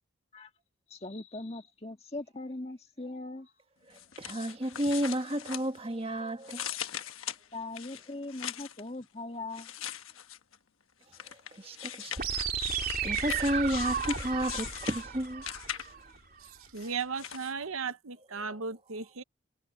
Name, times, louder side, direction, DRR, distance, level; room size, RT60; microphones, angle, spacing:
voice 1, 0.9-3.5 7.5-9.7, left 2 dB, 30° left, 1.8 m, -40 dB
sound 1, 3.9-6.1 6.4-8.8 9.5-10.6 11.1-16.1 16.8-17.5, left 10 dB, 80° left, 1.2 m, -40 dB
voice 2, 3.9-6.8 11.2-12.4 12.7-15.4 15.9-16.0, right 1 dB, 25° right, 1.6 m, -32 dB
sound 2, 12.2-16.2, right 6 dB, 45° right, 3.6 m, -34 dB
voice 3, 16.4-19.2, right 5 dB, 80° right, 0.9 m, -36 dB
head